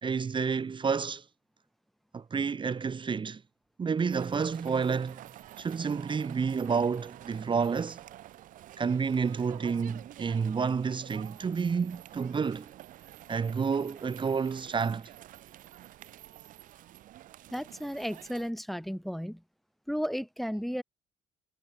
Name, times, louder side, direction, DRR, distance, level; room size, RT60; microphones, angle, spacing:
voice 1, 0.0-1.2 2.1-3.4 3.8-5.2 5.6-8.0 8.8-12.7 13.3-15.1, right 5 dB, 35° right, 1.7 m, -30 dB
sound 1, 4.1-18.5, right 14 dB, 65° right, 5.7 m, -49 dB
voice 2, 17.5-19.4 19.9-20.8, equal, ahead, 2.3 m, -34 dB
hypercardioid pair, 60°, 15 cm